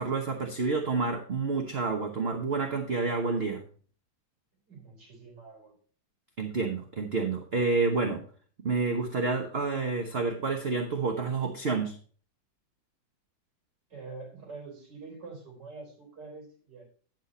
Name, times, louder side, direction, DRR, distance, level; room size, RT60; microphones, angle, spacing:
voice 1, 0.0-3.6 6.4-8.2 8.6-12.0, right 4 dB, 40° right, 3 dB, 1.1 m, -29 dB
voice 2, 4.7-5.7 13.9-16.9, right 3 dB, 65° right, -1 dB, 4.8 m, -45 dB
10.0 x 6.6 x 4.2 m, 0.43 s
omnidirectional pair, 2.0 m